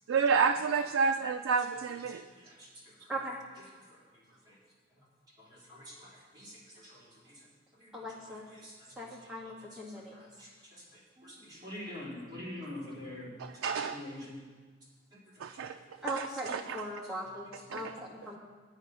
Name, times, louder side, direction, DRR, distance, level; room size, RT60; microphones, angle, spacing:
voice 1, 0.1-2.2 13.4-14.0 15.4-15.8 16.2-16.8 17.7-17.9, right 5 dB, 85° right, 7 dB, 0.4 m, -30 dB
voice 2, 2.3-3.1 3.9-4.6 5.0-5.1 5.4-7.5 7.7-9.5 9.8-13.4 13.9-14.4 15.1-16.0 18.2-18.4, left 1 dB, 20° right, -8 dB, 4.1 m, -47 dB
voice 3, 7.9-8.5 9.0-10.1 11.2-11.5 12.1-12.5 16.0-18.4, right 1 dB, 5° right, -5 dB, 2.0 m, -40 dB
10.0 x 9.7 x 5.5 m, 1.5 s
head